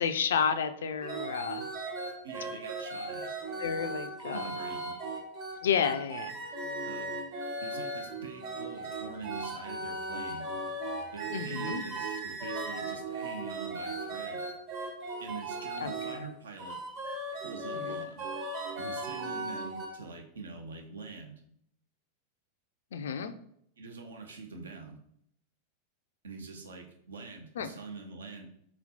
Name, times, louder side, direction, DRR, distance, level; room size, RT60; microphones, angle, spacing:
voice 1, 0.0-1.7 3.6-4.5 5.6-6.4 11.3-11.8 15.8-15.9 17.7-18.0 22.9-23.3 27.6-27.7, left 7 dB, 60° left, 10 dB, 0.3 m, -31 dB
sound 1, 1.0-16.2 16.6-19.9, right 2 dB, 40° right, 1.2 m, -37 dB
voice 2, 2.2-3.3 4.3-5.0 6.8-7.1 7.6-10.5 11.1-14.4 15.2-16.8 17.4-18.3 18.8-21.4 23.8-25.0 26.2-28.5, right 4 dB, 70° right, 3 dB, 0.7 m, -45 dB
4.2 x 4.2 x 2.7 m, 0.70 s
figure-of-eight pair, 90°, 0 cm